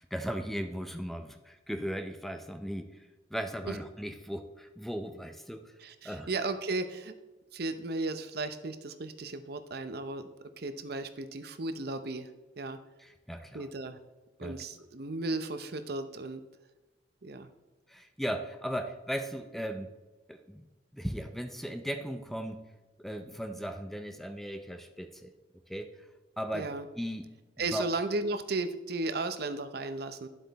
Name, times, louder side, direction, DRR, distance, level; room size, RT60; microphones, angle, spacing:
voice 1, 0.0-5.7 6.0-6.3 13.0-13.7 14.4-14.6 17.9-19.9 20.3-20.7 20.9-22.6 23.0-25.3 25.7-26.1 26.4-27.3 27.7-27.9, equal, ahead, 7 dB, 0.6 m, -37 dB
voice 2, 5.8-7.1 7.5-10.3 10.6-12.3 12.6-12.8 13.5-14.0 14.4-16.4 17.2-17.5 26.5-26.9 27.6-30.3, right 2 dB, 60° right, 10 dB, 0.7 m, -35 dB
11.5 x 7.7 x 4.1 m, 1.1 s
head